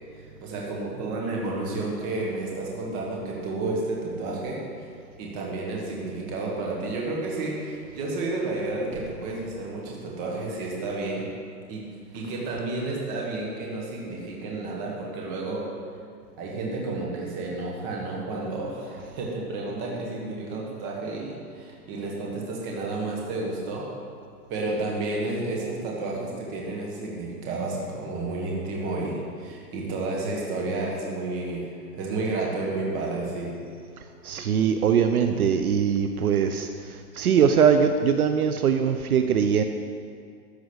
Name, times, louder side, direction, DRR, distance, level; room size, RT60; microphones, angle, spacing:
voice 1, 0.2-4.9 5.2-11.3 11.7-11.8 12.1-15.7 16.4-23.9 24.5-33.5, right 2 dB, 15° right, -3 dB, 1.5 m, -31 dB
voice 2, 34.2-39.6, right 7 dB, 60° right, 7 dB, 0.7 m, -22 dB
13.5 x 5.1 x 8.1 m, 2.2 s
hypercardioid pair, 170°, 49 cm